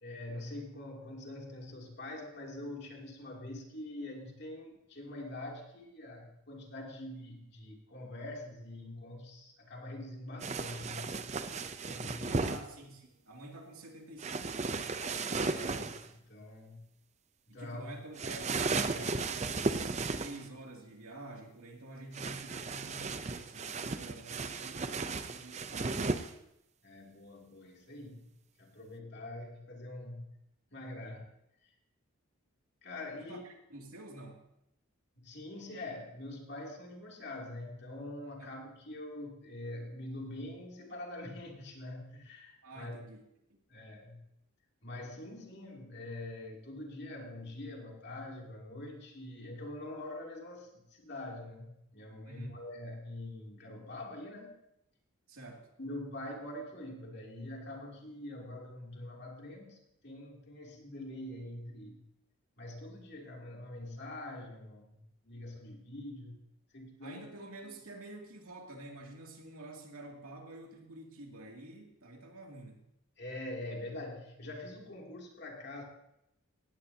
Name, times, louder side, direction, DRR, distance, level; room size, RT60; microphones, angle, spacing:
voice 1, 0.0-11.2 11.8-12.5 15.4-16.9 17.5-17.9 26.8-28.3 28.6-30.3 30.7-31.2 32.8-33.4 35.2-43.0 43.7-44.2 44.8-54.5 55.8-62.0 62.6-65.0 65.2-66.4 66.7-67.2 73.2-75.8, left 1 dB, 50° left, -1 dB, 2.9 m, -44 dB
sound 1, 10.4-12.6 14.2-16.1 18.2-20.5 22.1-26.3, right 3 dB, 30° right, 0.6 m, -35 dB
voice 2, 12.3-15.6 17.5-26.3 33.2-34.4 38.4-38.5 42.6-43.6 52.2-52.6 55.3-55.7 67.0-72.8, right 2 dB, 85° right, 0 dB, 2.7 m, -49 dB
18.5 x 16.0 x 2.9 m, 0.82 s
head